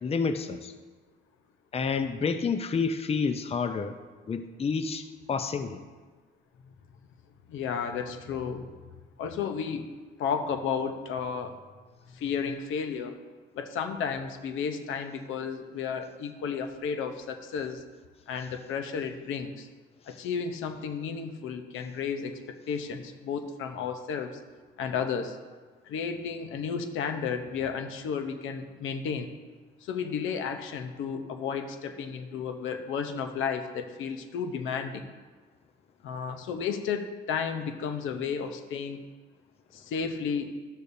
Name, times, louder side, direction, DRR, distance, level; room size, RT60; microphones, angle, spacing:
voice 1, 0.0-0.7 1.7-4.0 4.3-5.8, left 5 dB, 30° left, 9 dB, 0.6 m, -29 dB
voice 2, 7.5-8.8 9.2-9.9 10.2-11.6 12.1-13.2 13.5-17.8 18.3-19.7 20.1-24.4 24.8-25.4 25.9-29.3 29.8-35.1 36.0-39.0 39.7-40.5, left 6 dB, 85° left, 7 dB, 0.8 m, -33 dB
12.5 x 8.2 x 2.7 m, 1.4 s
cardioid pair, 90°, 20 cm